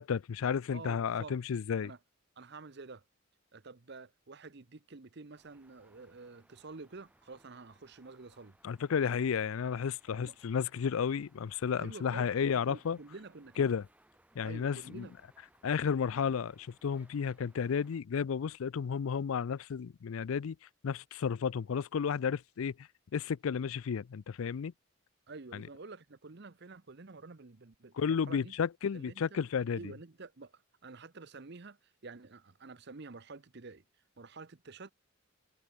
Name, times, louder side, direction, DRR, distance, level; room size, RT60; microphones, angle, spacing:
voice 1, 0.0-1.9 8.6-13.0 13.6-13.8 14.4-15.1 15.6-20.6 20.8-22.7 23.1-24.7 25.5-25.6 28.0-29.8, left 6 dB, 75° left, 0.4 m, -32 dB
voice 2, 0.7-1.4 1.8-2.0 2.4-3.0 3.5-8.6 10.1-10.4 11.8-13.7 14.4-15.1 25.3-28.5 28.9-29.4 29.7-33.8 34.2-34.9, right 3 dB, 50° right, 0.8 m, -49 dB
sound 1, 5.4-18.0, right 1 dB, 5° right, 2.6 m, -67 dB
head